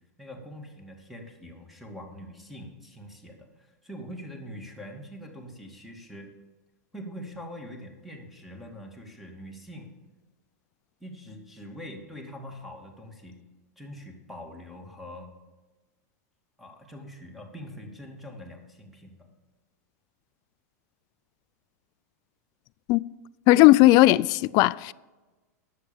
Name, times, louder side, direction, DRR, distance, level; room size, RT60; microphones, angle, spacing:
voice 1, 0.2-6.3 6.9-9.9 11.0-13.4 13.8-15.4 16.6-19.3, equal, ahead, 2.4 m, -43 dB
voice 2, 23.5-24.9, left 17 dB, 45° left, 0.3 m, -17 dB
9.8 x 7.5 x 7.0 m
hypercardioid pair, 110°, 9 cm